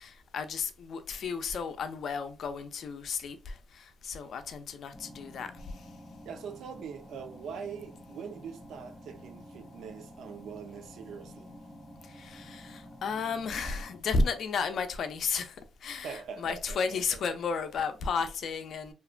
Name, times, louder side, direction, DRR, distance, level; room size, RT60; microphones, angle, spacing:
voice 1, 0.0-5.5 12.1-15.6 15.8-18.9, left 4 dB, 60° left, 0.4 m, -33 dB
sound 1, 4.9-14.0, equal, 5° right, 0.5 m, -50 dB
voice 2, 6.3-11.5 15.9-17.2, right 6 dB, 75° right, 0.4 m, -43 dB
2.8 x 2.1 x 2.4 m
cardioid pair, 90°, 0 cm